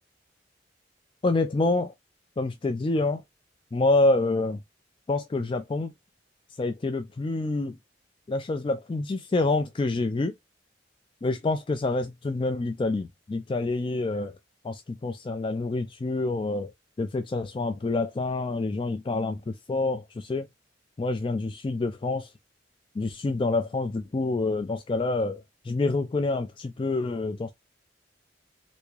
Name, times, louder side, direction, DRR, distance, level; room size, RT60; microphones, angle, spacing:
voice 1, 1.2-1.9 2.4-3.2 3.7-4.6 5.1-5.9 6.6-7.8 8.3-10.3 11.2-14.4 14.6-16.7 17.0-20.5 21.0-22.3 23.0-27.5, left 2 dB, 25° left, 0.3 m, -27 dB
3.5 x 2.7 x 3.1 m
head